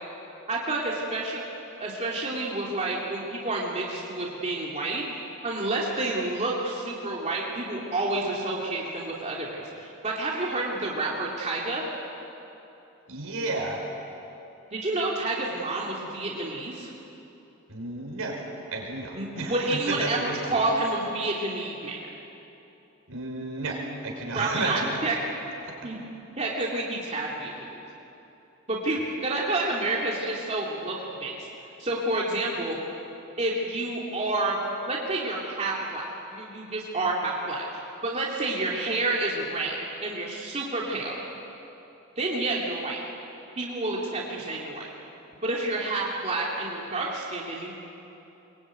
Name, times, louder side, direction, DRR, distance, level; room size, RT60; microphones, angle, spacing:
voice 1, 0.5-1.4 1.8-5.1 5.4-11.8 14.7-16.9 19.1-22.0 24.3-25.1 25.8-26.0 26.4-27.7 28.7-31.4 31.8-32.8 33.4-34.6 34.9-41.2 42.2-43.0 43.6-44.9 45.4-47.7, right 2 dB, 30° right, -4 dB, 2.9 m, -29 dB
voice 2, 13.1-13.8 17.7-20.6 23.1-25.1 25.6-25.7, right 2 dB, 75° right, 0 dB, 5.6 m, -32 dB
23.0 x 22.5 x 9.3 m, 2.9 s
head